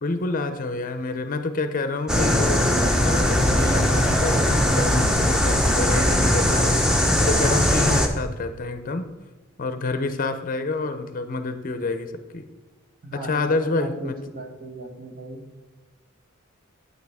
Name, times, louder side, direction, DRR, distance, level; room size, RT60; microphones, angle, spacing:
voice 1, 0.0-9.1 9.6-12.4 13.1-14.2, left 3 dB, 40° left, 9 dB, 0.6 m, -28 dB
sound 1, 2.1-8.1, equal, 5° right, 0.7 m, -20 dB
voice 2, 13.0-15.4, right 1 dB, 45° right, 3 dB, 1.4 m, -37 dB
9.3 x 8.4 x 3.5 m, 1.2 s
head